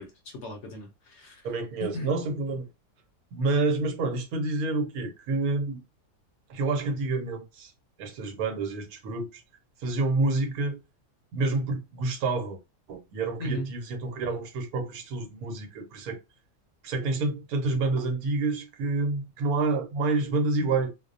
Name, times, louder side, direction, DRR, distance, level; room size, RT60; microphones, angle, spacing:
voice 1, 0.0-1.5 1.8-2.1 13.4-13.7, equal, 65° left, 0.8 m, -36 dB
voice 2, 1.4-2.7 3.3-5.8 6.5-7.7 8.0-9.4 9.8-10.8 11.3-12.6 12.9-16.2 16.8-20.9, right 3 dB, 80° right, 1.1 m, -28 dB
2.5 x 2.1 x 2.5 m
omnidirectional pair, 1.5 m